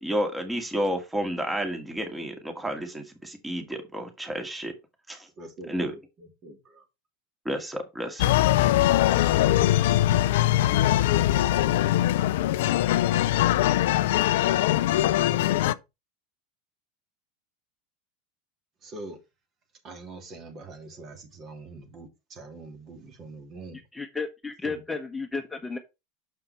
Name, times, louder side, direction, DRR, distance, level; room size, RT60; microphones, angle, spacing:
voice 1, 0.0-4.7 5.1-5.3 5.7-6.0 7.5-8.3, equal, 10° right, 2.1 m, -31 dB
voice 2, 5.4-6.0 6.4-6.8 18.8-19.2 19.8-23.8 24.6-24.8, right 2 dB, 40° right, 2.9 m, -43 dB
sound 1, 8.2-15.7, left 14 dB, 70° left, 0.5 m, -22 dB
voice 3, 23.7-25.8, left 4 dB, 10° left, 1.1 m, -33 dB
6.8 x 5.6 x 4.4 m
hypercardioid pair, 90°, 0 cm